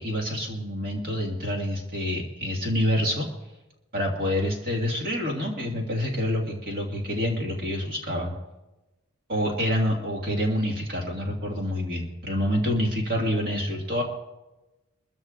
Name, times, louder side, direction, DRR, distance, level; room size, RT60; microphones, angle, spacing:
voice 1, 0.0-3.3 3.9-8.3 9.3-14.0, equal, 40° right, -1 dB, 1.9 m, -27 dB
24.5 x 14.0 x 2.5 m, 1.0 s
head